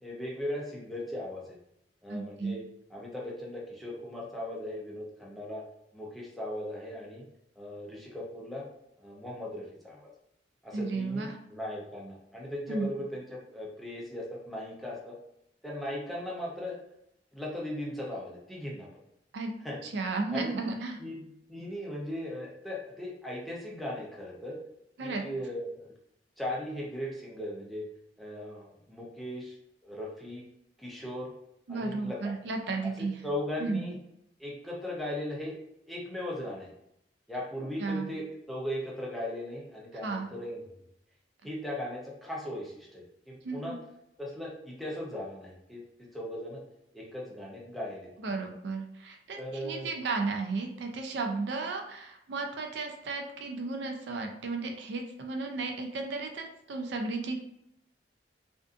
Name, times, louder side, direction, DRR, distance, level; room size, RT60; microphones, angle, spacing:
voice 1, 0.0-1.6 2.0-2.6 2.9-5.6 5.9-7.2 7.6-8.7 9.0-10.1 10.6-15.2 15.6-16.8 17.3-18.9 19.6-19.8 20.3-20.5 21.0-24.6 25.0-25.9 26.4-27.9 28.2-29.6 29.8-30.4 30.8-31.3 31.7-32.3 33.0-33.9 34.4-35.5 35.9-36.7 37.3-40.6 41.4-43.8 44.2-45.8 46.1-46.6 46.9-48.4 49.4-49.9, left 1 dB, ahead, -4 dB, 0.5 m, -38 dB
voice 2, 2.1-2.6 10.7-11.4 12.7-12.9 19.3-19.5 19.8-21.0 25.0-25.2 31.7-33.2 33.6-33.9 37.8-38.1 40.0-40.3 43.4-43.8 48.2-57.4, right 3 dB, 65° right, 3 dB, 0.4 m, -34 dB
2.5 x 2.4 x 2.4 m, 0.77 s
head